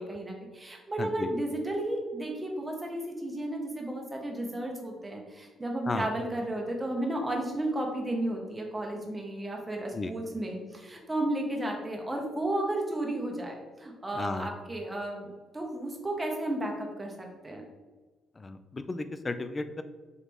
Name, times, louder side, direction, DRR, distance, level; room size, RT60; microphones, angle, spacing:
voice 1, 0.0-17.6, right 1 dB, 15° right, 1 dB, 0.9 m, -33 dB
voice 2, 1.0-1.3 5.9-6.1 9.9-10.1 14.1-14.5 18.4-19.8, left 3 dB, 30° left, 10 dB, 0.3 m, -34 dB
4.0 x 2.9 x 3.4 m, 1.3 s
cardioid pair, 90°, 0 cm